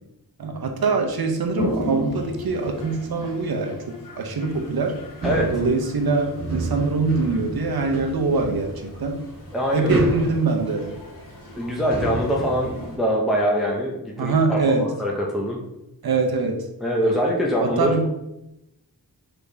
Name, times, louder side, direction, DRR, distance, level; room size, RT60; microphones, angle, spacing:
voice 1, 0.4-5.0 5.5-9.2 9.7-11.0 14.2-14.9 16.0-16.6 17.6-18.1, right 3 dB, 65° right, 4 dB, 0.7 m, -23 dB
Toilet flush, 1.4-13.0, left 1 dB, 55° left, 1.0 m, -37 dB
sound 1, 4.5-13.0, right 2 dB, 40° right, 1.4 m, -31 dB
voice 2, 9.5-9.9 11.6-15.6 16.8-17.9, equal, ahead, -2 dB, 0.6 m, -23 dB
4.0 x 3.4 x 3.4 m, 0.88 s
wide cardioid pair, 95°, 39 cm